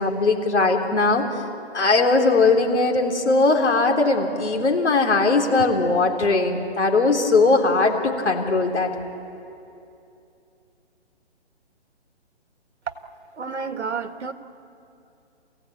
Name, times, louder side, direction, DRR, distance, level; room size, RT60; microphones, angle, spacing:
voice 1, 0.0-1.4 1.7-8.9, left 3 dB, 75° left, 2 dB, 3.8 m, -19 dB
voice 2, 13.4-14.3, right 5 dB, 75° right, 9 dB, 1.6 m, -30 dB
28.5 x 16.5 x 8.8 m, 2.7 s
hypercardioid pair, 170°, 34 cm